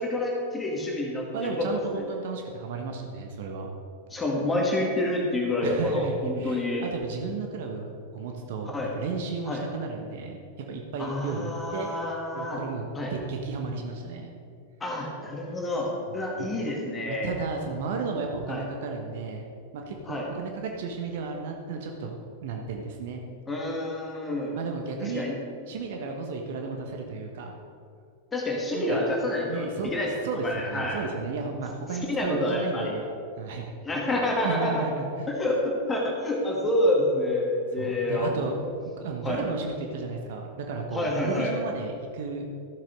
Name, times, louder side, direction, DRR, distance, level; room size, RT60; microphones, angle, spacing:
voice 1, 0.0-1.7 1.9-2.0 4.1-6.9 8.7-8.9 9.5-9.6 11.0-12.6 13.0-13.1 14.8-17.3 18.5-18.7 20.1-20.3 23.5-24.6 25.0-25.4 28.3-30.1 30.4-31.0 32.1-33.0 33.8-34.8 35.3-38.5 39.2-39.4 40.9-41.5, left 1 dB, 15° left, -2 dB, 2.0 m, -28 dB
voice 2, 1.3-3.7 5.6-10.4 10.7-12.0 12.3-14.3 16.4-16.5 17.1-19.5 19.7-23.2 24.5-25.3 25.7-27.5 28.7-29.1 29.5-30.0 30.2-33.0 33.4-33.7 34.4-35.1 37.8-38.5 38.9-42.4, right 4 dB, 55° right, 2 dB, 1.2 m, -33 dB
13.0 x 7.5 x 5.3 m, 2.4 s
figure-of-eight pair, 90°, 0 cm